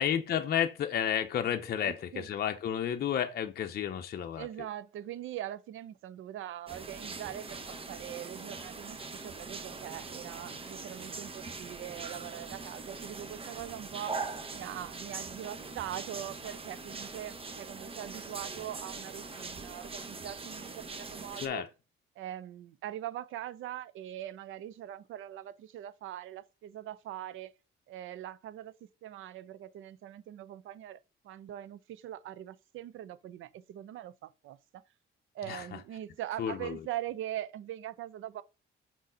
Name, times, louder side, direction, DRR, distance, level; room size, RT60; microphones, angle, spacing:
voice 1, 0.0-4.5 21.4-21.7 35.5-35.6 36.4-36.8, left 9 dB, 50° left, 0.6 m, -31 dB
voice 2, 1.8-2.3 4.3-7.6 7.9-14.2 14.5-21.6 22.2-27.5 27.9-28.7 29.0-34.8 35.3-38.4, right 12 dB, 75° right, 0.6 m, -42 dB
sound 1, 6.7-21.5, right 4 dB, 25° right, 0.9 m, -42 dB
6.2 x 4.1 x 3.8 m
cardioid pair, 100°, 21 cm